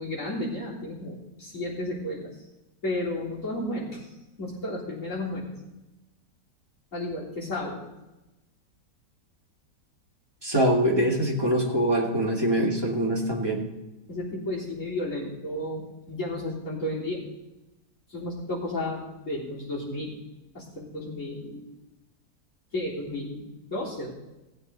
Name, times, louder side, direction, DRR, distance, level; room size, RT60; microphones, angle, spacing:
voice 1, 0.0-2.4 2.8-4.1 4.4-5.5 6.9-7.8 14.1-17.3 18.1-20.2 20.5-21.6 22.7-24.1, left 1 dB, 45° left, -5 dB, 3.9 m, -33 dB
voice 2, 10.4-13.6, right 1 dB, 15° right, -2 dB, 2.4 m, -24 dB
18.0 x 8.8 x 4.1 m, 1.0 s
omnidirectional pair, 1.8 m